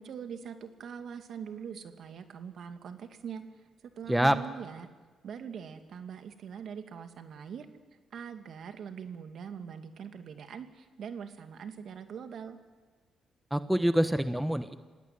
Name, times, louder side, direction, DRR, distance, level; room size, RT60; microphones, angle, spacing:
voice 1, 0.0-3.4 3.8-4.9 5.2-7.7 8.1-12.6, right 7 dB, 60° right, 7 dB, 2.3 m, -42 dB
voice 2, 13.5-14.8, right 1 dB, 5° right, 10 dB, 1.1 m, -26 dB
27.0 x 17.0 x 9.6 m, 1.4 s
cardioid pair, 90°, 0 cm